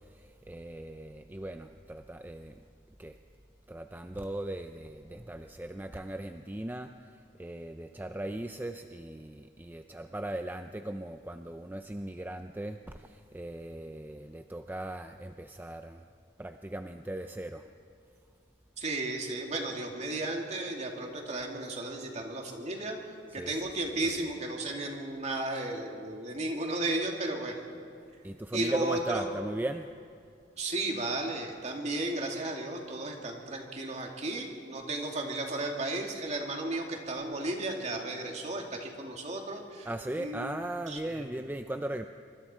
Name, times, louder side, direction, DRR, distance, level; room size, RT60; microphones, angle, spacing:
voice 1, 0.1-2.6 3.0-3.2 3.7-6.9 7.4-16.0 16.4-17.7 23.3-23.5 28.2-29.9 39.9-42.1, right 1 dB, 10° right, 7 dB, 0.5 m, -38 dB
voice 2, 18.8-23.0 23.3-27.6 28.5-29.3 30.6-40.5 40.9-41.4, right 2 dB, 40° right, 1 dB, 2.6 m, -34 dB
25.0 x 24.5 x 4.5 m, 2.4 s
head